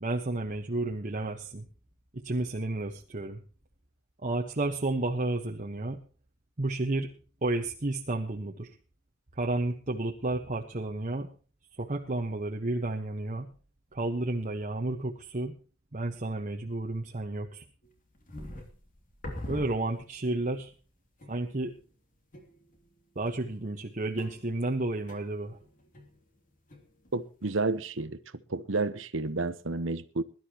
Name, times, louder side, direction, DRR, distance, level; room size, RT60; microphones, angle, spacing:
voice 1, 0.0-1.6 2.1-3.4 4.2-6.0 6.6-7.1 7.4-8.7 9.4-11.3 11.8-13.5 13.9-15.5 15.9-17.6 19.5-20.7 21.3-21.7 23.1-25.6, right 2 dB, 40° right, 1.3 m, -31 dB
sound 1, 17.8-20.3 20.7-20.8 21.2-21.7 22.3-23.0 23.3-27.1 27.4-28.0, left 1 dB, 45° left, 2.9 m, -44 dB
voice 2, 27.1-28.2 28.5-30.2, right 3 dB, 70° right, 1.1 m, -30 dB
21.5 x 12.5 x 3.0 m
head